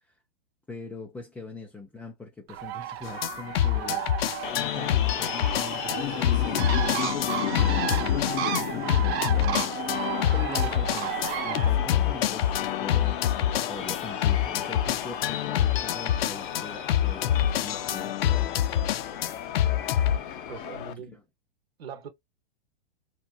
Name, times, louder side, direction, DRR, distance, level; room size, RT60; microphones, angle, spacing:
voice 1, 0.7-4.1 4.5-11.1 11.4-19.0 21.0-21.2, left 3 dB, 5° left, 0.3 m, -42 dB
Bird, 2.5-11.7, right 10 dB, 35° right, 0.7 m, -33 dB
sound 1, 3.0-20.2, left 11 dB, 80° left, 0.4 m, -26 dB
sound 2, 4.4-20.9, left 9 dB, 60° left, 0.8 m, -34 dB
voice 2, 20.5-21.2 21.8-22.1, right 6 dB, 85° right, 0.8 m, -41 dB
2.9 x 2.5 x 2.3 m
hypercardioid pair, 130°, 29 cm